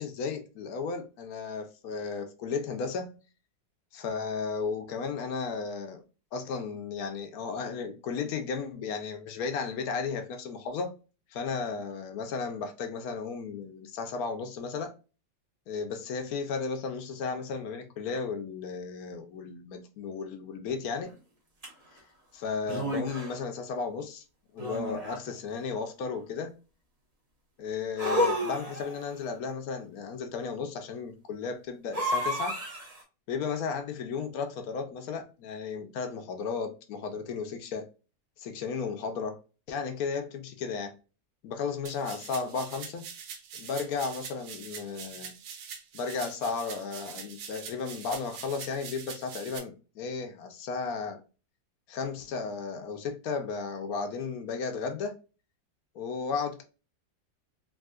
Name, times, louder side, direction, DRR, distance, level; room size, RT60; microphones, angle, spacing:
voice 1, 0.0-3.2 3.9-6.0 6.3-10.9 11.3-14.9 15.7-21.1 22.3-24.2 24.5-26.5 27.6-32.6 33.3-37.9 38.4-39.4 39.7-41.0 41.4-43.0 43.5-45.3 45.9-51.2 51.9-55.2 55.9-56.6, left 5 dB, 70° left, 0.9 m, -34 dB
sound 1, 21.6-21.7 22.6-23.4 24.6-25.3 28.0-29.0 31.9-33.0, equal, 35° right, 0.6 m, -30 dB
sound 2, 41.9-49.6, right 7 dB, 85° right, 1.4 m, -43 dB
3.6 x 2.7 x 2.3 m
omnidirectional pair, 2.1 m